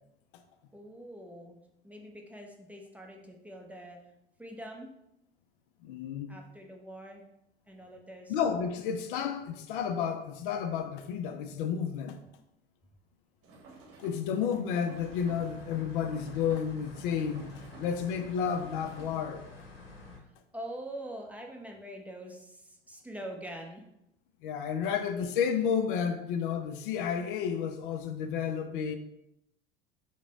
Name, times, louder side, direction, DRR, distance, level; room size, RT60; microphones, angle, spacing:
voice 1, 0.7-4.0 4.4-4.9 6.3-7.3 7.7-8.4 20.5-23.8 24.9-25.0, right 1 dB, 5° right, 0.6 m, -44 dB
voice 2, 5.8-6.3 8.3-12.2 14.0-19.5 24.4-29.0, left 7 dB, 60° left, 0.5 m, -31 dB
sound 1, 13.4-19.2, right 3 dB, 50° right, 0.9 m, -53 dB
sound 2, 14.9-20.2, left 3 dB, 85° left, 0.8 m, -49 dB
4.8 x 2.2 x 3.6 m
figure-of-eight pair, 70°, 29 cm